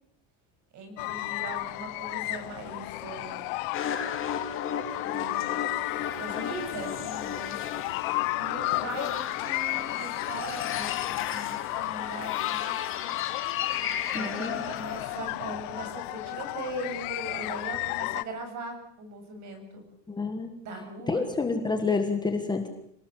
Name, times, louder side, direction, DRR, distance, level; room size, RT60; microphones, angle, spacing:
voice 1, 0.7-3.6 4.9-5.6 6.2-8.0 8.4-13.1 14.1-19.8 20.6-21.3, right 2 dB, 40° right, 5 dB, 7.3 m, -40 dB
sound 1, 1.0-18.2, left 21 dB, 70° left, 1.1 m, -33 dB
sound 2, 3.7-15.2, left 8 dB, 30° left, 2.7 m, -35 dB
voice 2, 14.1-14.6 20.1-20.6 21.1-22.7, left 4 dB, 10° left, 5 dB, 1.5 m, -28 dB
26.5 x 19.0 x 7.8 m, 0.71 s
cardioid pair, 180°, 43 cm